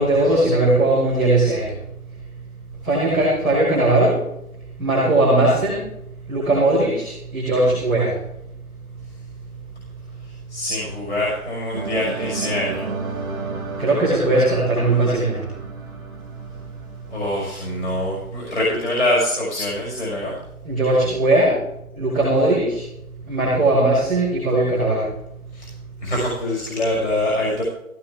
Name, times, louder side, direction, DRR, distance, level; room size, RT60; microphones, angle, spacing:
voice 1, 0.0-1.7 2.8-4.1 4.8-5.8 6.3-8.1 13.8-15.4 20.6-21.5 22.0-22.8 23.3-25.0, right 2 dB, ahead, -19 dB, 2.0 m, -18 dB
voice 2, 10.2-12.9 17.1-20.4 25.5-25.7 26.0-27.6, left 1 dB, 50° left, -4 dB, 5.9 m, -24 dB
sound 1, 11.7-17.7, right 4 dB, 15° right, 1.9 m, -32 dB
17.0 x 16.0 x 3.7 m, 0.82 s
figure-of-eight pair, 175°, 43 cm